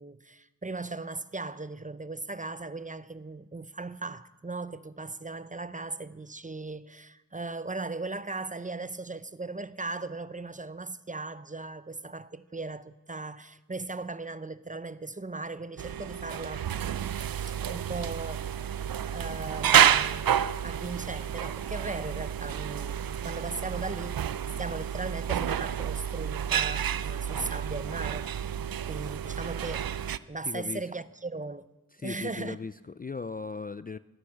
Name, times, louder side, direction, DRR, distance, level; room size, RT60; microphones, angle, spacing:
voice 1, 0.0-16.7 17.5-18.8 19.1-20.4 20.6-24.3 24.6-28.6 28.9-29.9 30.3-31.7 32.0-32.6, right 3 dB, 20° right, 0.6 m, -38 dB
sound 1, 15.8-30.2, right 9 dB, 70° right, 0.5 m, -29 dB
voice 2, 30.4-30.8 31.9-34.0, left 4 dB, 25° left, 0.4 m, -37 dB
17.0 x 9.9 x 7.2 m
cardioid pair, 50°, 36 cm